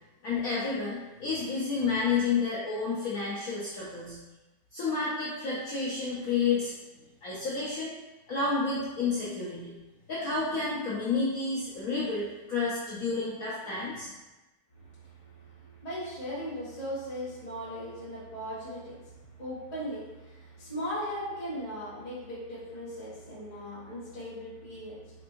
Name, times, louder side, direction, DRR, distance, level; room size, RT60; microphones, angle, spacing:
voice 1, 0.2-4.2 4.7-6.7 7.2-7.9 8.3-9.7 10.1-14.1, left 4 dB, 70° left, -8 dB, 0.8 m, -30 dB
voice 2, 14.8-25.2, equal, 20° left, -12 dB, 1.2 m, -38 dB
4.3 x 2.6 x 3.0 m, 1.1 s
omnidirectional pair, 2.3 m